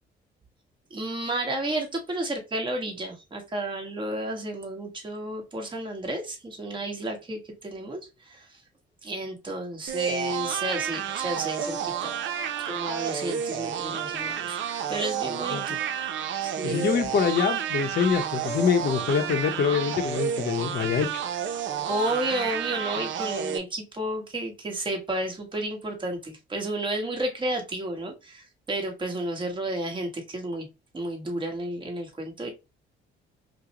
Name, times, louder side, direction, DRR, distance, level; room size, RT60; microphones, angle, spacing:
voice 1, 0.9-8.6 9.0-12.2 12.6-14.6 14.9-15.8 16.4-16.9 21.9-30.7 30.9-32.5, right 1 dB, 25° right, 1.3 m, -32 dB
sound 1, 9.9-23.6, right 8 dB, 70° right, 0.6 m, -30 dB
voice 2, 16.6-21.2, left 6 dB, 55° left, 0.7 m, -25 dB
4.9 x 2.1 x 2.9 m
cardioid pair, 90°, 20 cm